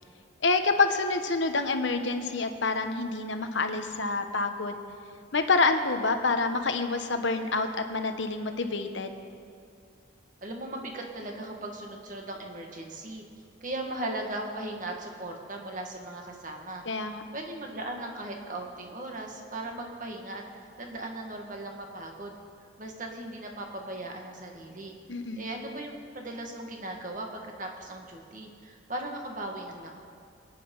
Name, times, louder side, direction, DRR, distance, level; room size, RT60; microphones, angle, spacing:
voice 1, 0.4-4.8 5.3-9.2 16.9-17.2 25.1-25.4, left 3 dB, 70° left, 7 dB, 1.2 m, -27 dB
voice 2, 10.4-13.2 13.6-16.8 17.3-20.4 20.8-22.3 22.8-24.9 25.4-30.0, right 1 dB, 40° right, 1 dB, 1.9 m, -38 dB
23.5 x 10.0 x 5.5 m, 2.3 s
head